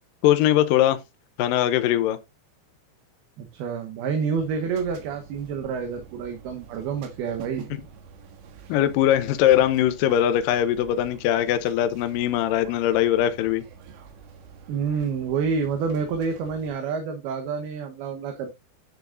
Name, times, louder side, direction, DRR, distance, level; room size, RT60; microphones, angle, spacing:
voice 1, 0.2-1.0 1.4-2.2 8.7-13.6, left 12 dB, 80° left, 2.0 m, -21 dB
voice 2, 3.4-7.7 14.7-18.5, right 6 dB, 70° right, 2.8 m, -28 dB
sound 1, 4.4-16.7, right 6 dB, 90° right, 3.6 m, -46 dB
9.8 x 6.9 x 2.5 m
omnidirectional pair, 4.9 m